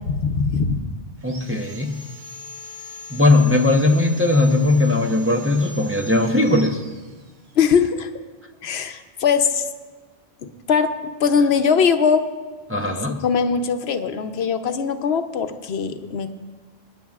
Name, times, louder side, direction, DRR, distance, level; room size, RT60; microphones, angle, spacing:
voice 1, 0.1-0.8 7.6-8.1 8.6-9.6 10.7-12.2 12.8-16.3, left 6 dB, 85° left, 8 dB, 1.0 m, -21 dB
voice 2, 1.2-1.9 3.1-6.8 12.7-13.2, left 2 dB, 15° right, 2 dB, 0.6 m, -18 dB
Sawing, 1.2-7.7, left 1 dB, 50° right, 1.3 m, -41 dB
25.0 x 10.0 x 2.4 m, 1.4 s
omnidirectional pair, 1.0 m